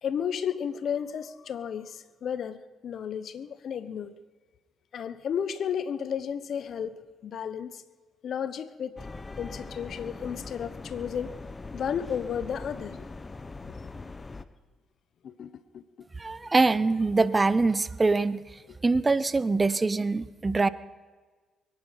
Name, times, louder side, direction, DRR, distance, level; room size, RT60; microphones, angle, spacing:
voice 1, 0.0-4.1 4.9-7.8 8.2-9.0 9.4-11.4 11.7-13.1 15.2-15.8, left 8 dB, 60° left, 1.0 m, -33 dB
sound 1, 9.0-14.4, left 3 dB, 30° left, 1.0 m, -41 dB
voice 2, 16.2-18.4 18.8-20.7, right 3 dB, 30° right, 0.8 m, -24 dB
23.0 x 11.0 x 5.8 m
supercardioid pair, 55°, 0 cm